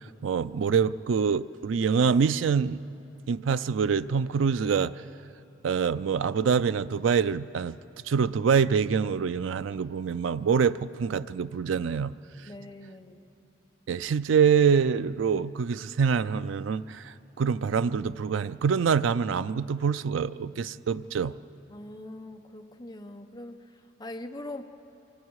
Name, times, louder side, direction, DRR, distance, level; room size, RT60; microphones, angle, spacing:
voice 1, 0.2-2.8 3.3-4.9 5.6-7.8 8.1-12.1 13.9-21.3, right 6 dB, 90° right, 0.4 m, -25 dB
voice 2, 12.5-13.3 21.7-23.6 24.0-24.6, left 1 dB, 20° left, 0.9 m, -42 dB
27.5 x 25.0 x 4.8 m
head